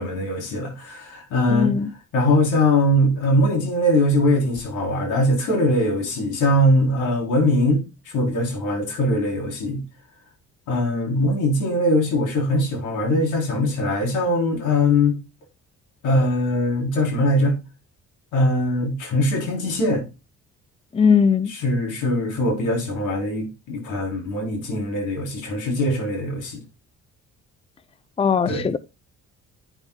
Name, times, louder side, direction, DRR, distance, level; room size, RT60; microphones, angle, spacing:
voice 1, 0.0-1.7 2.1-7.8 8.1-9.8 10.7-15.2 16.0-17.6 18.3-20.0 21.5-26.6 28.5-28.7, left 1 dB, 90° left, 3.9 m, -21 dB
voice 2, 1.5-1.9 20.9-21.5 28.2-28.8, left 6 dB, 20° left, 0.5 m, -19 dB
10.5 x 8.9 x 2.3 m
cardioid pair, 90°, 30 cm